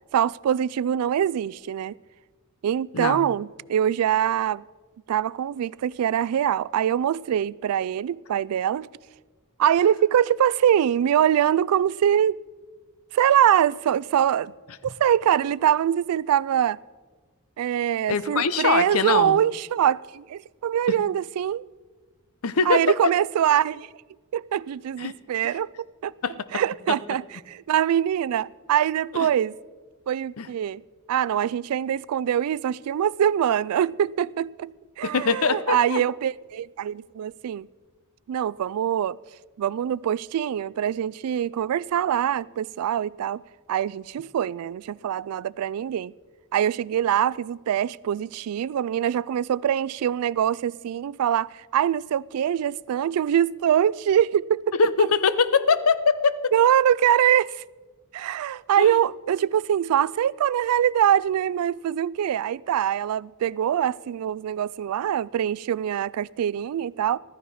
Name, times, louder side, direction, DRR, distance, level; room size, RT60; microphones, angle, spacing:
voice 1, 0.1-2.0 2.6-4.6 5.1-8.9 9.6-12.4 13.1-14.5 14.8-16.8 17.6-21.6 22.7-23.9 24.3-26.1 26.5-29.5 30.1-30.8 31.1-34.7 35.0-37.7 38.3-39.2 39.6-43.4 43.7-46.1 46.5-54.6 55.0-55.1 56.5-57.6 58.1-67.2, right 10 dB, 80° right, 0.3 m, -23 dB
voice 2, 2.9-3.3 18.1-19.4 22.4-22.8 25.0-25.1 26.2-26.6 26.9-27.0 29.1-29.3 30.4-30.5 35.0-36.0 54.7-56.5 58.8-59.0, left 5 dB, 75° left, 0.7 m, -23 dB
15.0 x 13.0 x 4.2 m
head